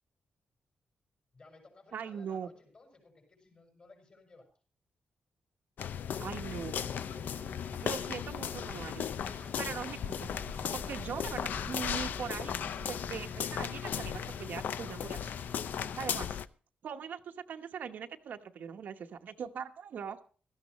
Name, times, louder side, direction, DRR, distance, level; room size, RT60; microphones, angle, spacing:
voice 1, 1.3-4.5, left 3 dB, 40° left, 3 dB, 5.9 m, -58 dB
voice 2, 1.9-2.5 6.2-6.8 7.8-9.1 9.3-10.3 10.7-15.2 16.0-16.4 16.8-20.3, right 7 dB, 75° right, 5 dB, 1.0 m, -41 dB
sound 1, 5.8-16.5, left 8 dB, 80° left, 0.5 m, -36 dB
sound 2, 6.5-16.1, left 2 dB, 20° left, 2.7 m, -48 dB
17.0 x 13.5 x 3.1 m, 0.40 s
wide cardioid pair, 125°, 3 cm